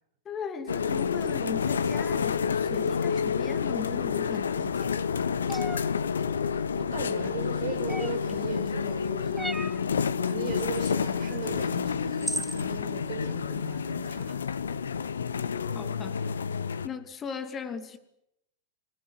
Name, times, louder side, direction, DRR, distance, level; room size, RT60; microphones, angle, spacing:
voice 1, 0.2-4.9 15.7-16.3 16.8-18.0, left 6 dB, 25° left, 2.7 m, -38 dB
sound 1, 0.7-16.9, left 6 dB, 70° left, 1.0 m, -29 dB
sound 2, 5.5-5.8 7.9-8.3 9.4-9.8 11.5-11.6 12.2-12.6, right 1 dB, 5° right, 1.0 m, -34 dB
voice 2, 6.4-9.6 10.2-14.4, right 6 dB, 50° right, 6.1 m, -38 dB
28.0 x 17.5 x 9.8 m
figure-of-eight pair, 90°, 0 cm